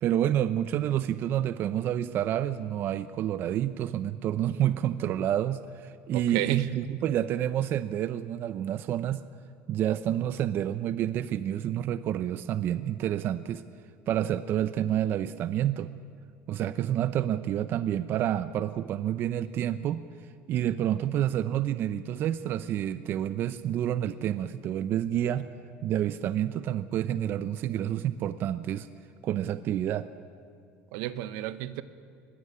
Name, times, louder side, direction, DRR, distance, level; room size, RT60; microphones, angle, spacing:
voice 1, 0.0-9.2 9.7-13.6 14.1-15.9 16.5-20.0 20.5-25.5 25.8-28.9 29.2-30.1, right 11 dB, 40° right, 13 dB, 0.6 m, -29 dB
voice 2, 6.1-6.7 30.9-31.8, right 15 dB, 80° right, 13 dB, 1.1 m, -30 dB
21.0 x 21.0 x 8.5 m, 2.2 s
cardioid pair, 165°, 6 cm